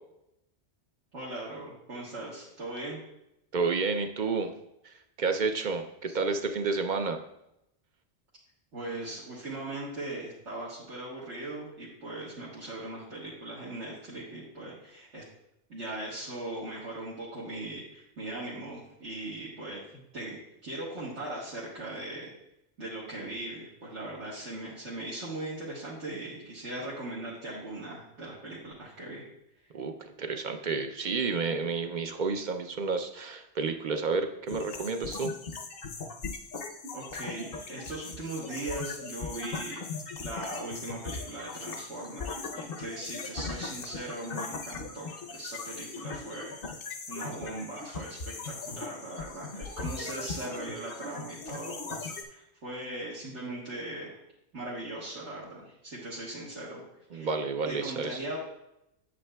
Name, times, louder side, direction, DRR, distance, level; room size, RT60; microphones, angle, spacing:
voice 1, 1.1-3.0 6.1-6.2 8.7-15.2 15.7-22.3 22.8-29.2 36.9-39.8 40.2-46.5 46.8-54.2 54.5-56.8 57.1-57.3 57.6-58.4, right 2 dB, 85° right, -8 dB, 1.7 m, -39 dB
voice 2, 3.5-4.5 4.8-7.2 29.7-35.3 57.1-58.2, right 4 dB, 55° right, 6 dB, 0.6 m, -30 dB
sound 1, 34.5-52.2, left 4 dB, 60° left, 0.9 m, -39 dB
8.5 x 7.4 x 2.3 m, 0.84 s
omnidirectional pair, 1.2 m